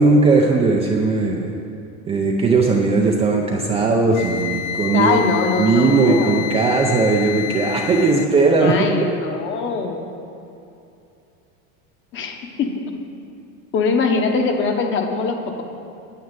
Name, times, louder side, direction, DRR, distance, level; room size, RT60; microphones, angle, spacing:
voice 1, 0.0-1.5 2.1-5.2 5.6-8.8, right 3 dB, 15° right, -1 dB, 0.5 m, -17 dB
Wind instrument woodwind instrument, 4.1-8.3, left 13 dB, 65° left, 0.6 m, -29 dB
voice 2, 4.9-6.5 8.6-10.1 12.1-12.7 13.7-15.6, left 4 dB, 30° left, 4 dB, 1.0 m, -22 dB
9.4 x 7.2 x 8.9 m, 2.7 s
supercardioid pair, 160°, 40 cm